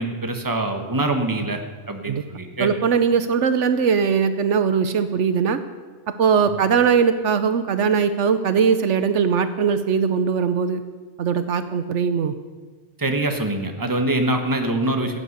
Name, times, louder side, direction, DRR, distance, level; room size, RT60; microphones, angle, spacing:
voice 1, 0.0-1.6 1.9-2.7 13.0-15.2, right 2 dB, 15° right, 5 dB, 1.3 m, -24 dB
voice 2, 2.6-5.6 6.1-10.8 11.2-12.3, right 6 dB, 75° right, 11 dB, 1.1 m, -20 dB
15.0 x 8.6 x 8.0 m, 1.4 s
omnidirectional pair, 1.3 m